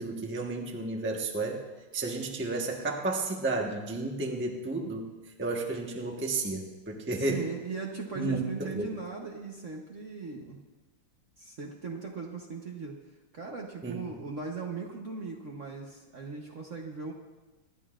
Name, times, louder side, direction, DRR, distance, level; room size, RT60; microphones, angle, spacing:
voice 1, 0.0-1.6 1.9-5.1 5.4-7.4 8.2-8.9 13.8-14.0, right 2 dB, 10° right, 1 dB, 0.8 m, -32 dB
voice 2, 7.2-10.6 11.4-13.0 13.3-17.1, right 4 dB, 45° right, 0 dB, 1.1 m, -38 dB
24.5 x 11.0 x 2.5 m, 1.2 s
omnidirectional pair, 2.2 m